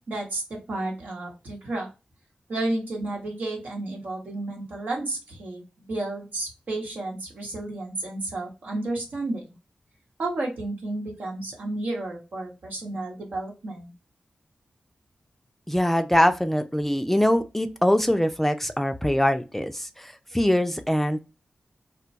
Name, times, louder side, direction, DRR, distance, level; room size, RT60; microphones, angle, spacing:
voice 1, 0.1-1.9 2.5-9.5 10.2-13.9, right 2 dB, 80° right, 1.1 m, -32 dB
voice 2, 15.7-21.2, left 1 dB, 10° left, 0.4 m, -23 dB
2.2 x 2.2 x 3.9 m
cardioid pair, 50°, 3 cm